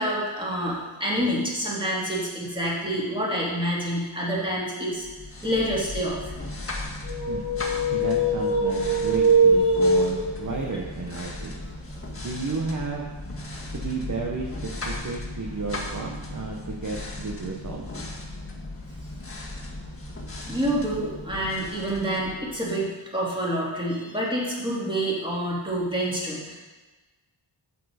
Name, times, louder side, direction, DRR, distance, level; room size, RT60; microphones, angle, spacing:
voice 1, 0.0-5.1 5.4-6.2 20.4-26.6, equal, 10° right, -6 dB, 3.0 m, -27 dB
sound 1, 5.0-22.8, left 2 dB, 25° left, 1.6 m, -37 dB
sound 2, 7.0-10.7, right 2 dB, 70° left, 1.9 m, -22 dB
voice 2, 7.9-11.5 12.2-13.1 13.7-17.8, right 3 dB, 40° right, -1 dB, 1.0 m, -32 dB
8.4 x 7.1 x 5.0 m, 1.2 s
wide cardioid pair, 75°, 49 cm